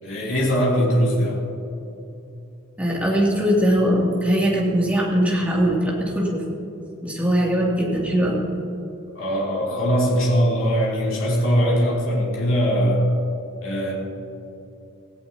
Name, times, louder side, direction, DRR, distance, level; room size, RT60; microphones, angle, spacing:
voice 1, 0.0-1.4 9.1-13.1 13.6-13.9, equal, 65° left, -5 dB, 3.3 m, -21 dB
voice 2, 2.8-6.4 7.0-8.4, equal, 5° right, -5 dB, 2.8 m, -21 dB
17.0 x 16.5 x 2.9 m, 2.9 s
head